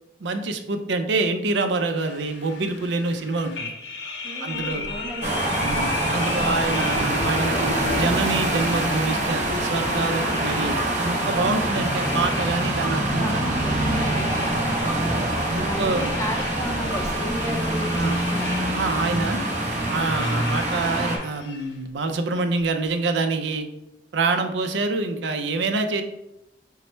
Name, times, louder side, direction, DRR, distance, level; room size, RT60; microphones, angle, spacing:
voice 1, 0.2-3.7 4.4-4.9 5.6-13.5 13.8-13.9 15.1-15.2 15.5-16.1 18.0-18.2 18.7-19.4 19.9-23.7 24.1-26.0, right 3 dB, 80° right, 7 dB, 0.5 m, -26 dB
sound 1, 2.0-21.7, left 3 dB, 85° left, 0.7 m, -35 dB
voice 2, 4.2-5.5 10.0-10.5 11.4-11.9 12.9-14.7 15.0-15.3 15.6-18.5, equal, 15° left, 3 dB, 0.5 m, -34 dB
Bird vocalization bird call bird song / Wind / Thunder, 4.5-20.4 21.1-21.2 21.5-21.9 22.3-22.9, equal, 15° right, 0.9 m, -42 dB
sound 2, 5.2-21.2, right 1 dB, 40° right, 0.7 m, -25 dB
5.4 x 2.1 x 4.3 m, 0.85 s
head